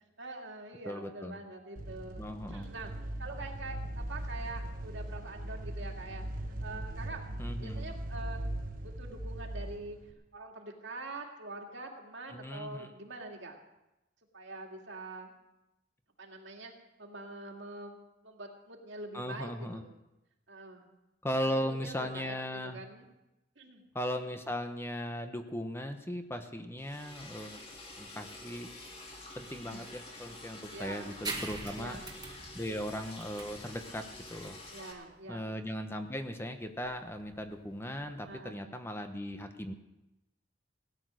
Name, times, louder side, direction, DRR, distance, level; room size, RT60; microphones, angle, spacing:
voice 1, 0.2-2.9 3.2-6.2 6.6-7.2 7.6-8.5 8.8-10.0 10.3-13.6 14.3-15.3 16.2-16.7 17.0-18.0 18.2-19.9 20.5-20.9 21.4-23.1 23.6-23.9 29.7-29.8 30.7-31.2 31.7-32.1 34.7-35.4 38.3-38.6, right 2 dB, 70° right, 2 dB, 2.3 m, -45 dB
voice 2, 0.8-1.4 2.2-2.7 7.4-7.8 12.3-12.9 19.1-19.8 21.2-22.8 23.9-27.6 28.0-28.7 29.4-32.0 32.5-34.0 34.3-34.6 35.3-39.7, equal, 15° left, 7 dB, 0.9 m, -37 dB
sound 1, 1.8-10.1, right 1 dB, 50° right, 1.3 m, -39 dB
Liquid, 26.8-34.9, left 2 dB, 30° left, 2.7 m, -48 dB
sound 2, 31.2-38.4, right 3 dB, 20° right, 1.7 m, -45 dB
17.0 x 10.5 x 6.4 m, 0.95 s
head